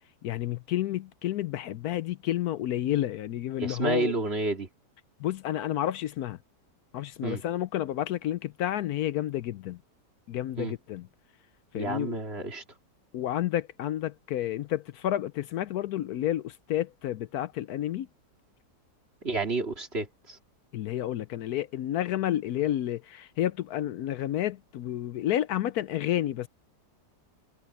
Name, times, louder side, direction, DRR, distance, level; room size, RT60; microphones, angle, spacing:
voice 1, 0.2-4.1 5.2-6.4 6.9-9.8 10.3-11.1 11.7-12.2 13.1-18.1 20.7-26.5, left 12 dB, 70° left, 1.0 m, -30 dB
voice 2, 3.6-4.7 7.2-7.4 10.6-10.7 11.7-12.6 19.2-20.4, right 3 dB, 35° right, 2.8 m, -30 dB
omnidirectional pair, 1.9 m